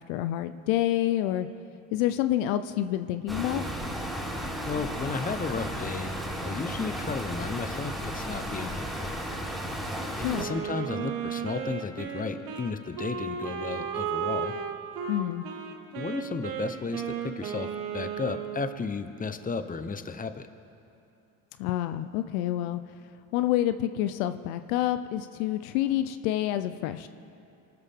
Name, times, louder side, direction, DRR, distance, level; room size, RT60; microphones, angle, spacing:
voice 1, 0.0-1.5 1.9-3.6 10.2-10.5 15.1-15.5 21.6-22.8 23.3-27.1, left 13 dB, 75° left, 11 dB, 0.7 m, -28 dB
sound 1, 3.3-10.4, equal, ahead, 4.3 m, -34 dB
voice 2, 4.7-9.2 10.2-14.5 15.9-17.7 17.9-20.5, left 4 dB, 20° left, 10 dB, 1.0 m, -34 dB
Wind instrument woodwind instrument, 10.3-18.8, right 7 dB, 65° right, 1.8 m, -34 dB
25.0 x 13.0 x 3.7 m, 2.7 s
hypercardioid pair, 70°, 41 cm